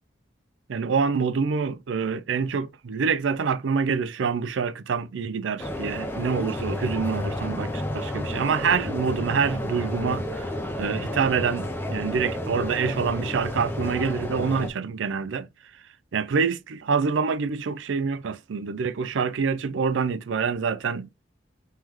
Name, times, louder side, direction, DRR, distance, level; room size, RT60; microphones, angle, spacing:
voice 1, 0.7-10.5 10.8-15.5 15.7-15.8 16.1-21.1, right 5 dB, 85° right, 0.4 m, -26 dB
sound 1, 5.6-14.7, left 1 dB, 10° left, 0.6 m, -31 dB
3.2 x 3.1 x 3.5 m
head